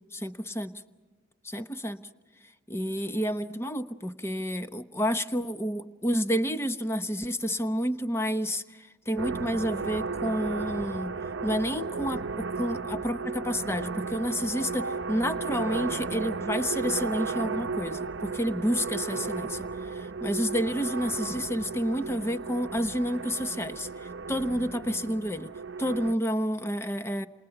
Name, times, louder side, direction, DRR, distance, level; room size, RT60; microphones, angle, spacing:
voice 1, 0.1-0.7 1.4-2.0 2.7-11.1 11.4-25.5 25.8-27.3, equal, 15° left, 11 dB, 0.9 m, -30 dB
sound 1, 9.2-26.1, right 4 dB, 75° right, 0.7 m, -34 dB
28.0 x 28.0 x 5.9 m, 1.3 s
head